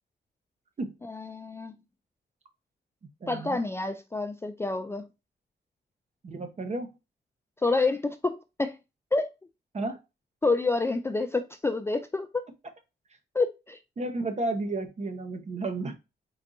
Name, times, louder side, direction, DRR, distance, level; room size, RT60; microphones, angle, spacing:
voice 1, 1.0-1.7 3.3-5.1 7.6-8.8 9.1-9.3 10.4-12.3 13.3-13.8, left 3 dB, 15° left, 0.3 m, -28 dB
voice 2, 3.2-3.6 6.2-6.9 9.7-10.0 14.0-15.9, right 2 dB, 40° right, 1.0 m, -32 dB
4.4 x 4.0 x 2.6 m
wide cardioid pair, 125°, 18 cm